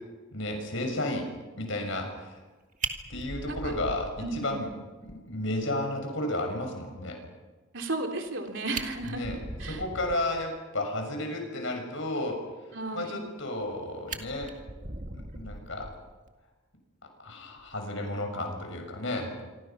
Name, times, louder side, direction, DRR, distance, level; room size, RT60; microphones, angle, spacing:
voice 1, 0.3-2.4 3.1-4.7 5.0-7.2 9.0-9.4 9.7-12.4 12.9-14.5 15.1-15.9 17.2-19.3, left 1 dB, 65° left, 4 dB, 6.6 m, -33 dB
Fire, 2.4-2.5 2.8-4.7 5.1-5.2 5.6-5.7 6.0-6.1 8.3-8.4 8.6-10.4 13.2-13.7 14.1-16.3 17.6-17.8, right 3 dB, 40° right, 2.0 m, -39 dB
voice 2, 4.2-4.6 7.7-9.2 9.6-9.8 12.7-13.2, right 2 dB, 65° right, 3 dB, 3.6 m, -34 dB
27.0 x 25.0 x 5.9 m, 1.2 s
head